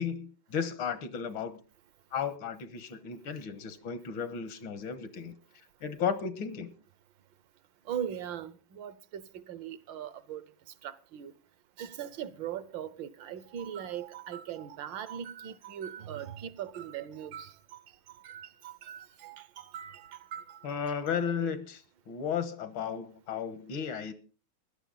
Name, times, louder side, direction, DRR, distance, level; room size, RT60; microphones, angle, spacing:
voice 1, 0.0-1.6 2.1-6.7 20.6-24.1, left 7 dB, 85° left, 2.0 m, -34 dB
voice 2, 7.9-10.4 10.8-11.3 11.8-17.5 18.2-20.7 21.1-21.2, right 9 dB, 75° right, 1.5 m, -40 dB
16.0 x 11.5 x 3.9 m
omnidirectional pair, 2.1 m